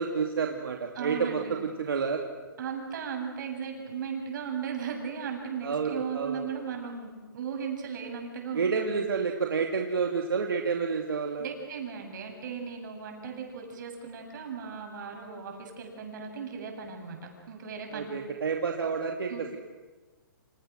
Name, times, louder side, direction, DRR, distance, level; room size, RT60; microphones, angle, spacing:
voice 1, 0.0-2.2 5.6-6.4 8.5-11.5 17.9-19.6, right 5 dB, 85° right, 1 dB, 2.7 m, -29 dB
voice 2, 0.9-1.6 2.6-9.0 11.4-18.1 19.3-19.4, right 6 dB, 60° right, 3 dB, 7.9 m, -37 dB
29.5 x 28.0 x 6.6 m, 1.4 s
hypercardioid pair, 145°, 12 cm